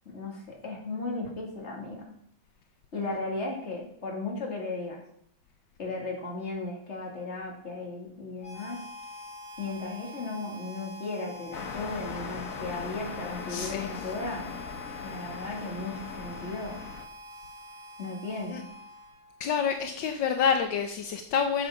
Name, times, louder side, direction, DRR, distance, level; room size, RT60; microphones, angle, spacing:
voice 1, 0.1-2.1 2.9-5.0 5.8-8.8 9.6-14.5 15.0-16.8 18.0-18.7, left 3 dB, 35° left, 0 dB, 2.6 m, -36 dB
Harmonica, 8.4-19.4, left 2 dB, 10° right, 3.4 m, -45 dB
sound 1, 11.5-17.1, left 6 dB, 55° left, 1.2 m, -39 dB
voice 2, 13.5-14.0 18.5-18.6 19.4-21.7, left 7 dB, 75° left, 6 dB, 1.5 m, -28 dB
7.9 x 7.6 x 5.8 m, 0.67 s
omnidirectional pair, 2.0 m